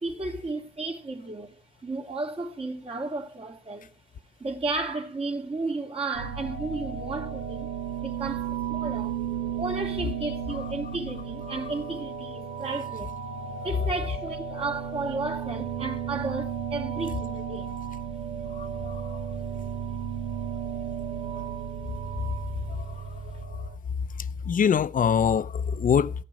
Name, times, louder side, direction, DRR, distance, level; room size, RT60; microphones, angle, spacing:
voice 1, 0.0-3.9 4.4-7.7 8.0-9.2 9.6-13.1 13.6-17.7, right 3 dB, 30° right, 2.6 m, -33 dB
sound 1, 6.1-23.8, right 7 dB, 80° right, 1.6 m, -34 dB
voice 2, 18.5-19.2 21.4-21.5 22.7-23.1 23.5-23.6 24.4-26.2, left 7 dB, 45° left, 0.8 m, -25 dB
15.0 x 5.8 x 9.0 m
cardioid pair, 90°, 20 cm